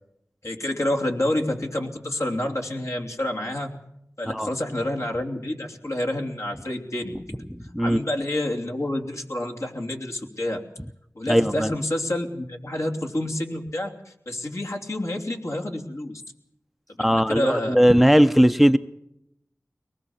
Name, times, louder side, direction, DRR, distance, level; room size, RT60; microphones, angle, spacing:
voice 1, 0.4-3.7 4.2-7.4 7.8-10.6 11.1-16.2 17.0-17.7, left 1 dB, 60° left, 2 dB, 3.1 m, -28 dB
voice 2, 7.5-8.0 11.3-11.7 17.0-18.8, equal, ahead, 11 dB, 0.8 m, -18 dB
23.5 x 19.5 x 7.2 m, 0.80 s
wide cardioid pair, 40°, 6 cm